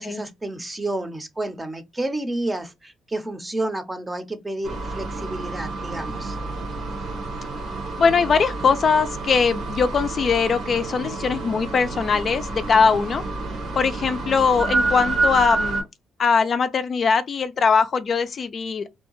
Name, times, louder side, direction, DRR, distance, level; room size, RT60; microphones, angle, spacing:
voice 1, 0.0-6.4, right 1 dB, 15° right, 0.6 m, -30 dB
sound 1, 4.6-15.8, right 3 dB, 75° right, 1.1 m, -28 dB
voice 2, 8.0-13.2 13.8-15.8 16.2-18.9, left 5 dB, 50° left, 0.3 m, -21 dB
2.6 x 2.1 x 2.9 m
cardioid pair, 90°, 0 cm